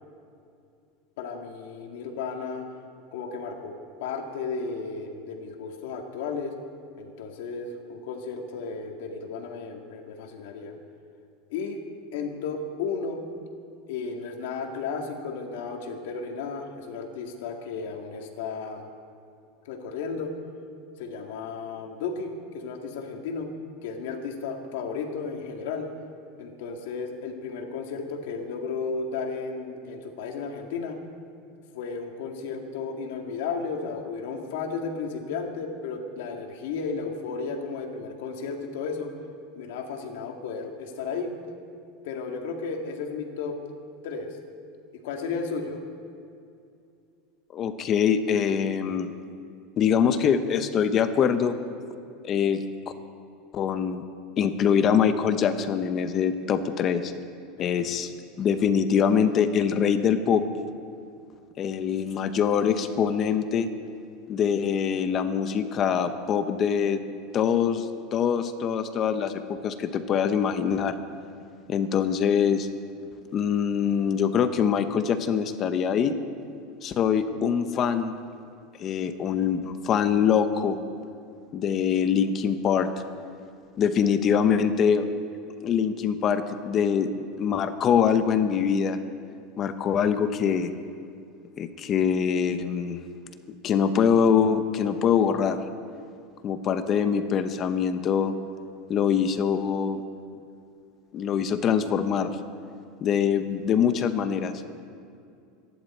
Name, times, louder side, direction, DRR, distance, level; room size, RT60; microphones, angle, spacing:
voice 1, 1.2-2.7 3.1-3.7 4.0-6.5 7.0-10.8 11.5-11.8 12.1-13.3 13.9-18.9 19.7-20.3 21.0-23.5 23.8-25.9 26.4-31.0 31.7-39.1 39.5-41.3 42.0-43.6 44.0-44.4 45.0-45.8 57.6-58.1, left 5 dB, 75° left, 3 dB, 2.0 m, -34 dB
voice 2, 47.5-49.1 49.8-51.6 52.2-52.6 53.5-54.0 54.4-57.1 57.6-58.1 58.4-60.4 61.6-63.7 64.3-67.0 67.3-70.9 71.7-72.7 73.3-76.1 76.8-78.1 78.8-80.8 81.5-82.9 83.8-85.1 85.6-89.0 89.6-90.7 91.6-93.0 93.6-95.6 96.4-98.3 98.9-100.0 101.1-102.3 103.0-104.5, left 7 dB, 30° left, 10 dB, 0.7 m, -24 dB
25.0 x 11.0 x 4.4 m, 2.5 s
supercardioid pair, 165°, 0 cm